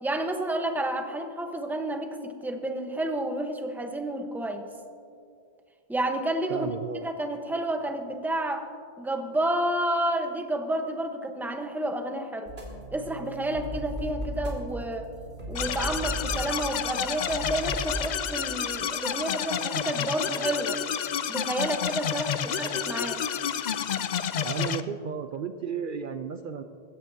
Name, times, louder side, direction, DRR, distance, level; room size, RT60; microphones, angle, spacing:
voice 1, 0.0-4.7 5.9-6.8 7.0-8.7 9.0-12.5 12.9-15.1 15.5-20.8 21.3-23.2, right 1 dB, ahead, 4 dB, 0.9 m, -30 dB
voice 2, 6.5-7.1 24.4-26.6, right 6 dB, 60° right, 8 dB, 0.7 m, -33 dB
sound 1, 12.5-18.0, right 1 dB, 85° right, 2.8 m, -36 dB
sound 2, 15.5-24.8, left 8 dB, 55° left, 0.5 m, -30 dB
20.5 x 15.5 x 2.7 m, 2.3 s
omnidirectional pair, 1.0 m